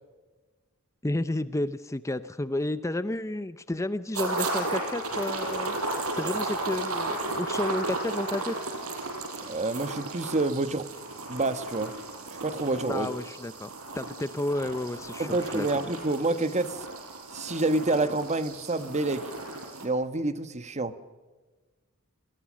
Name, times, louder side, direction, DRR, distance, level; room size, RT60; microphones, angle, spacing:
voice 1, 1.0-5.8 6.2-8.5 12.9-13.7 14.0-15.7, left 1 dB, 15° left, 13 dB, 0.6 m, -31 dB
sound 1, 4.1-19.9, right 2 dB, 80° right, 5.2 m, -34 dB
voice 2, 9.4-10.9 11.3-11.9 12.4-13.1 15.2-16.9 17.3-19.3 19.8-20.9, right 2 dB, 30° right, 12 dB, 1.2 m, -28 dB
28.5 x 21.0 x 6.3 m, 1.3 s
head